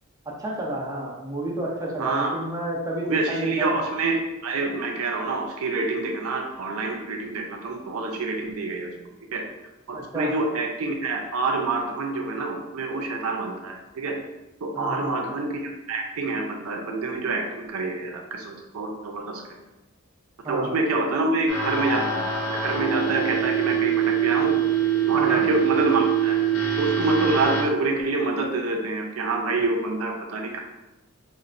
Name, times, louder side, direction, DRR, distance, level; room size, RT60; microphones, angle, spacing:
voice 1, 0.4-3.8 9.9-10.3 14.7-15.2 20.4-20.7 25.1-25.4, right 1 dB, 15° right, -3 dB, 0.5 m, -30 dB
voice 2, 2.0-2.3 3.0-8.9 9.3-9.4 9.9-14.2 14.6-15.6 15.9-19.4 20.5-24.5 25.1-26.4 26.8-30.6, right 3 dB, 80° right, 1 dB, 0.5 m, -26 dB
sound 1, 21.5-27.6, right 8 dB, 60° left, 0.6 m, -24 dB
4.0 x 2.1 x 2.5 m, 1.0 s
head